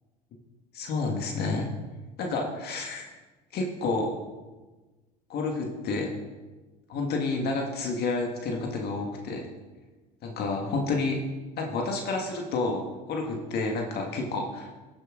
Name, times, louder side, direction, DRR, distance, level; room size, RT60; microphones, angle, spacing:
voice 1, 0.7-1.7 2.2-3.1 3.5-4.1 5.3-6.1 6.9-9.5 10.2-11.2 11.6-14.7, left 3 dB, 50° left, 1 dB, 1.9 m, -29 dB
15.0 x 7.6 x 3.9 m, 1.2 s
supercardioid pair, 90°, 20 cm